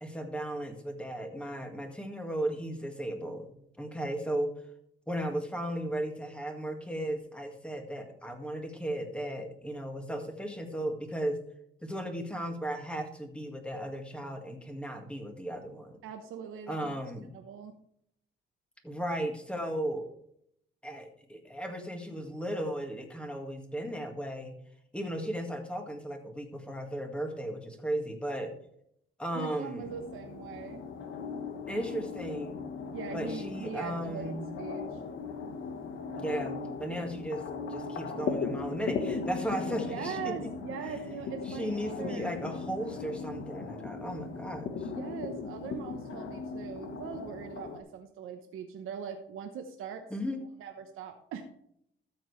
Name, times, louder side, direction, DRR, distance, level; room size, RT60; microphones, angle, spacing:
voice 1, 0.0-4.5 5.1-11.4 11.8-16.0 16.7-17.3 18.8-20.1 20.8-24.6 24.9-28.6 29.2-29.9 31.7-32.6 33.1-34.5 36.2-37.4 37.7-40.3 41.5-44.9 50.1-50.4, right 1 dB, 5° left, 4 dB, 1.9 m, -36 dB
voice 2, 16.0-16.9 17.4-17.7 29.3-30.8 32.9-35.0 39.9-42.4 44.8-50.0 50.6-51.4, right 7 dB, 85° right, 4 dB, 1.0 m, -41 dB
sound 1, 29.8-47.8, left 5 dB, 70° left, 1.3 m, -38 dB
13.0 x 7.7 x 3.3 m, 0.71 s
cardioid pair, 120°, 21 cm